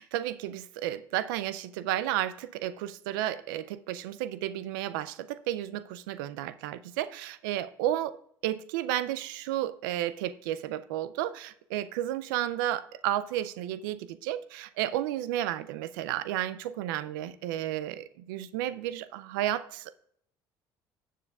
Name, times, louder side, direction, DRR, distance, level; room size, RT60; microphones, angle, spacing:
voice 1, 0.0-8.2 8.4-19.9, right 13 dB, 85° right, 0.4 m, -32 dB
13.5 x 7.4 x 2.3 m
supercardioid pair, 70°, 11 cm